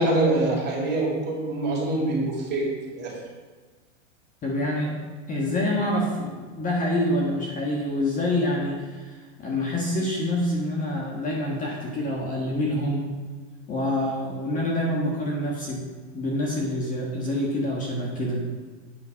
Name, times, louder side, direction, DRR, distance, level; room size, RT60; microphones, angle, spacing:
voice 1, 0.0-3.1, right 2 dB, 25° right, -2 dB, 3.3 m, -25 dB
voice 2, 4.4-5.0 5.3-13.0 13.7-15.9 16.1-18.4, left 1 dB, 20° left, -2 dB, 1.5 m, -26 dB
8.9 x 6.2 x 5.7 m, 1.4 s
hypercardioid pair, 135°, 38 cm